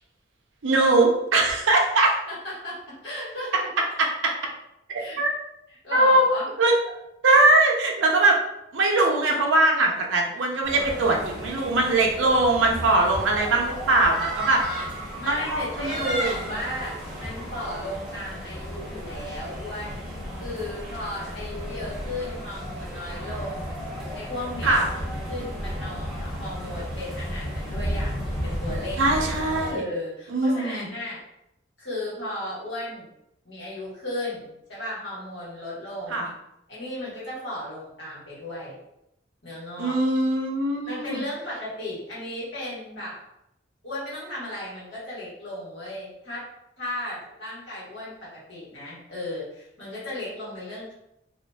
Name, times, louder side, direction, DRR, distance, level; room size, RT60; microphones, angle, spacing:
voice 1, 0.6-2.2 3.8-4.4 4.9-5.3 5.9-6.2 6.6-6.7 7.2-8.4 8.7-14.6 15.3-16.4 24.6-24.9 29.0-29.8 30.3-30.9 36.1-36.3 39.8-41.2, right 2 dB, 80° right, 1 dB, 0.6 m, -21 dB
voice 2, 2.3-3.5 4.0-4.1 4.9-5.2 5.7-6.5 15.2-20.1 20.4-23.8 24.1-29.2 29.7-31.2 31.8-33.1 33.4-36.3 36.7-38.8 39.4-40.0 40.9-43.2 43.8-46.5 46.8-50.9, left 1 dB, 75° left, -7 dB, 1.3 m, -35 dB
sound 1, 10.6-29.7, equal, 5° right, 0.8 m, -33 dB
2.8 x 2.4 x 2.2 m, 0.82 s
head